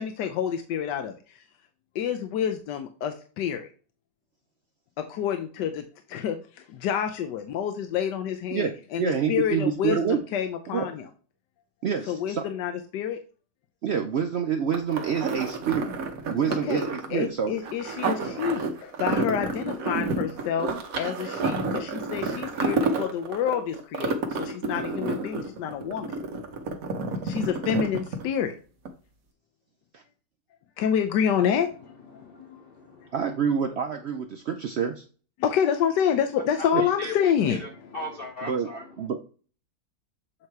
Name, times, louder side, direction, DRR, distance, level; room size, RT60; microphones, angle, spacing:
voice 1, 0.0-1.4 1.9-3.7 5.0-11.1 12.1-13.2 16.7-16.8 17.1-26.1 27.2-28.5 30.8-32.7 35.4-37.6, left 8 dB, 90° left, 1.3 m, -28 dB
voice 2, 8.5-10.2 10.7-10.9 11.8-12.5 13.8-15.9 16.3-17.6 29.9-30.0 33.1-35.0 36.7-36.9 38.5-38.7 39.0-39.2, right 7 dB, 80° right, 0.6 m, -27 dB
sound 1, 14.7-28.5 28.9-29.0, right 3 dB, 60° right, 1.3 m, -30 dB
voice 3, 32.0-33.2 36.6-39.1, left 2 dB, 45° left, 0.8 m, -38 dB
7.5 x 2.9 x 4.6 m
omnidirectional pair, 1.8 m